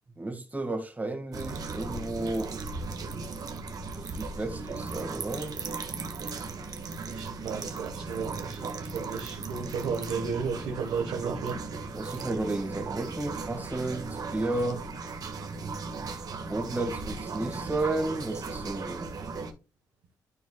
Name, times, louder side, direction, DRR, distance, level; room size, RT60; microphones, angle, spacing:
voice 1, 0.2-2.5 4.1-5.6 11.9-14.8 16.3-19.1, right 2 dB, 20° right, 2.0 m, -32 dB
sound 1, 1.3-19.5, right 4 dB, 60° right, 1.6 m, -37 dB
voice 2, 1.4-1.8 7.1-11.9, right 5 dB, 80° right, 1.4 m, -34 dB
13.0 x 4.6 x 2.3 m
cardioid pair, 70°, 7 cm